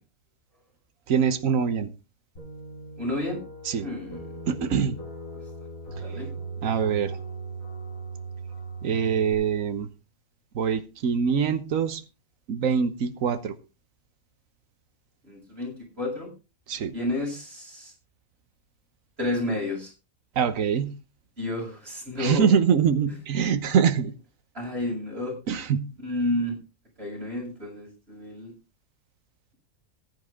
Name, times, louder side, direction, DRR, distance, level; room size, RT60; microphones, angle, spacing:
voice 1, 1.1-1.9 3.7-3.9 4.5-4.9 6.6-7.2 8.8-9.9 10.5-12.0 12.5-13.5 16.7-16.9 20.4-20.9 22.2-24.1 25.5-25.8, right 7 dB, 80° right, 10 dB, 1.4 m, -24 dB
sound 1, 2.4-9.3, right 3 dB, 90° left, 3.5 m, -38 dB
voice 2, 3.0-3.4 3.8-4.3 6.0-6.3 15.3-16.3 16.9-17.9 19.2-19.9 21.4-22.5 23.1-23.2 24.5-25.4 26.0-26.6 27.0-28.5, left 1 dB, 50° right, -2 dB, 7.4 m, -31 dB
14.5 x 11.0 x 3.7 m, 0.29 s
omnidirectional pair, 1.4 m